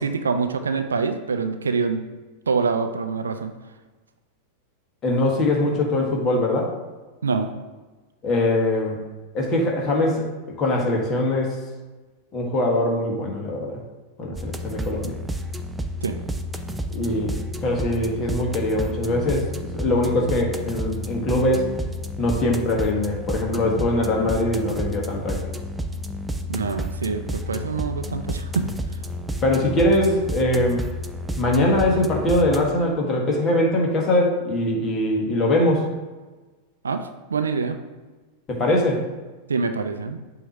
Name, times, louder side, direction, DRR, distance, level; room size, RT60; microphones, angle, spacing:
voice 1, 0.0-2.0 2.5-3.5 7.2-7.5 16.0-16.2 26.5-28.7 36.8-37.8 39.5-40.2, right 5 dB, 70° right, 7 dB, 0.5 m, -25 dB
voice 2, 5.0-6.7 8.2-9.0 9.3-10.3 10.6-11.6 12.3-13.8 14.2-15.1 16.9-17.4 17.6-21.7 22.2-25.4 29.4-30.8 31.4-35.9 38.5-39.0, left 1 dB, 30° left, -1 dB, 1.6 m, -22 dB
sound 1, 14.4-32.7, equal, 5° right, 0.5 m, -31 dB
7.6 x 3.0 x 5.2 m, 1.2 s
figure-of-eight pair, 90°, 0 cm